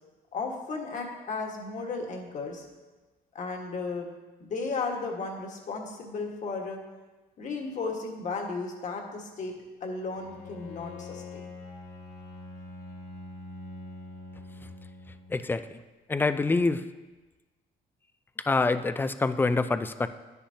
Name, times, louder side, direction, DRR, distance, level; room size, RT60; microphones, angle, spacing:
voice 1, 0.3-2.6 3.3-4.1 4.4-6.8 7.4-11.4, left 4 dB, 45° left, 1 dB, 1.6 m, -34 dB
Bowed string instrument, 10.2-15.5, left 2 dB, 65° left, 2.0 m, -44 dB
voice 2, 15.3-15.8 16.1-16.8 18.5-20.1, left 3 dB, 10° left, 11 dB, 0.4 m, -26 dB
10.0 x 9.8 x 2.8 m, 1.2 s
cardioid pair, 110°, 17 cm